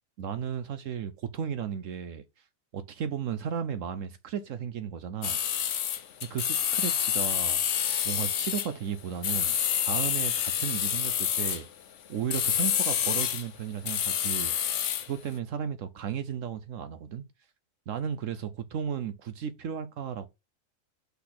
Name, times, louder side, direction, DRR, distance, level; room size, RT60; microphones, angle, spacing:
voice 1, 0.2-2.2 2.7-5.4 6.3-11.7 12.1-14.5 15.1-17.2 17.9-20.3, right 8 dB, 70° right, 1.1 m, -34 dB
sound 1, 5.2-8.7 9.2-11.7 12.3-13.5 13.9-15.1, left 9 dB, 65° left, 1.0 m, -28 dB
5.7 x 4.1 x 5.9 m
omnidirectional pair, 1.4 m